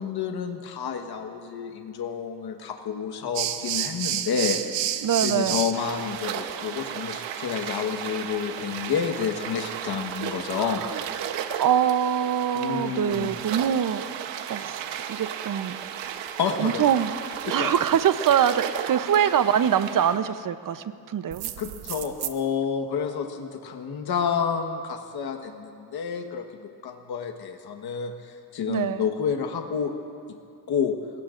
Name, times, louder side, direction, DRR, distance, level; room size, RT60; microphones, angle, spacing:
voice 1, 0.0-4.6 5.2-10.8 12.5-13.3 16.4-16.9 17.4-17.7 21.6-26.4 26.8-29.9 30.7-30.9, left 7 dB, 60° left, 4 dB, 1.4 m, -29 dB
sound 1, 3.3-20.2 21.3-22.3, right 10 dB, 85° right, 1.0 m, -33 dB
voice 2, 5.0-5.6 10.6-11.0 11.6-14.1 14.5-15.8 16.6-17.1 17.5-21.5 28.7-29.1, right 9 dB, 50° right, 12 dB, 0.8 m, -24 dB
28.0 x 17.5 x 2.6 m, 2.4 s
cardioid pair, 75°, 42 cm